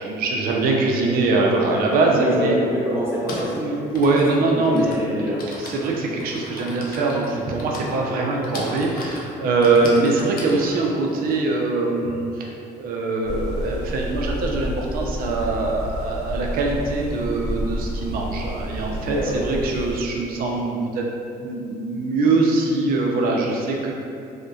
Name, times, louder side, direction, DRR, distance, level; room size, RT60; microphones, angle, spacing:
voice 1, 0.0-2.6 3.5-4.9 5.6-12.5 12.8-21.1 21.4-23.9, right 3 dB, 60° right, -1 dB, 0.4 m, -22 dB
Typing, 1.9-2.0 3.0-12.1, left 2 dB, 60° left, 0.5 m, -38 dB
voice 2, 2.1-2.5 2.8-3.8 4.5-5.4 9.6-9.9 19.0-19.4, equal, 15° right, -7 dB, 0.6 m, -26 dB
sound 1, 13.2-19.9, equal, 80° left, 0.8 m, -30 dB
2.6 x 2.1 x 2.2 m, 2.5 s
cardioid pair, 110°, 17 cm